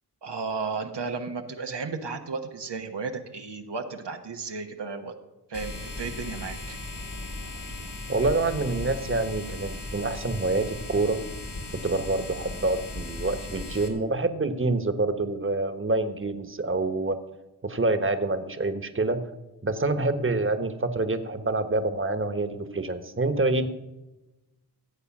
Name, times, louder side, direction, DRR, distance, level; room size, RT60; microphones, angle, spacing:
voice 1, 0.2-5.1 5.5-6.8, right 4 dB, 90° right, 4 dB, 1.3 m, -34 dB
sound 1, 5.5-13.9, left 2 dB, 85° left, 2.6 m, -37 dB
voice 2, 8.1-11.2 11.8-17.2 17.6-19.2 19.6-23.7, right 2 dB, 30° right, 10 dB, 1.3 m, -26 dB
15.5 x 8.2 x 6.1 m, 1.0 s
wide cardioid pair, 55°, 40 cm